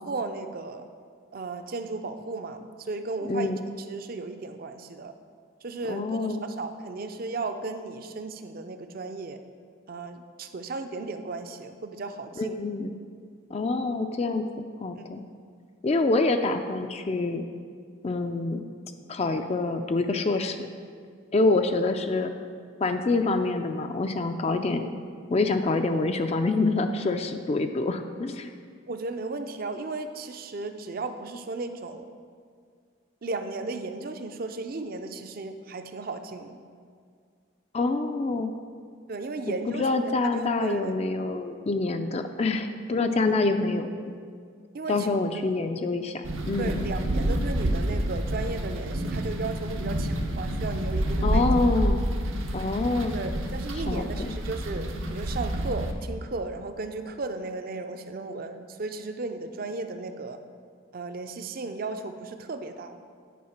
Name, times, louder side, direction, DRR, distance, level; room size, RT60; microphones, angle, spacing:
voice 1, 0.1-0.9 1.3-3.5 3.9-5.1 5.6-6.2 6.6-9.4 9.9-12.6 15.0-15.1 28.9-32.0 33.2-36.6 39.1-39.8 40.3-40.9 44.7-45.1 46.6-51.4 53.1-60.4 60.9-63.0, right 3 dB, 45° right, 8 dB, 0.5 m, -35 dB
voice 2, 3.2-3.6 5.9-6.4 12.4-12.9 13.5-15.2 15.8-17.4 18.0-18.6 19.1-20.7 21.3-22.3 22.8-24.9 25.3-28.5 37.7-38.5 39.5-43.9 44.9-46.8 51.2-52.0 52.5-53.1 53.9-54.3, left 3 dB, 30° left, 7 dB, 0.3 m, -26 dB
sound 1, 46.2-55.9, right 1 dB, 80° right, 0.9 m, -28 dB
9.3 x 4.8 x 5.8 m, 2.1 s
head